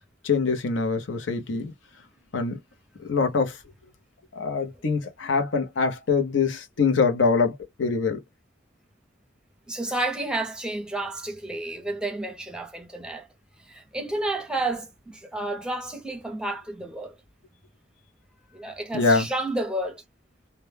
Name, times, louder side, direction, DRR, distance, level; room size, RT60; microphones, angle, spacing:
voice 1, 0.2-1.7 2.3-2.6 3.0-3.6 4.3-8.2 18.9-19.3, left 4 dB, 80° left, 0.6 m, -24 dB
voice 2, 9.7-13.3 13.6-17.1 18.5-20.0, right 2 dB, 5° right, 0.6 m, -31 dB
2.1 x 2.1 x 3.2 m
head